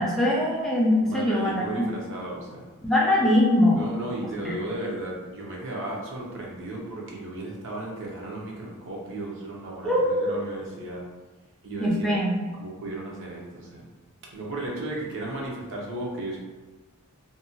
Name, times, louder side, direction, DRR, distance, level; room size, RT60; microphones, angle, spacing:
voice 1, 0.0-1.6 2.8-3.8 9.8-10.4 11.8-12.5, left 1 dB, ahead, -6 dB, 0.4 m, -22 dB
voice 2, 1.1-2.7 3.2-3.3 3.7-11.0 11.6-12.2 12.6-13.9 14.3-16.4, right 2 dB, 60° right, -3 dB, 0.6 m, -35 dB
2.6 x 2.1 x 2.7 m, 1.2 s
head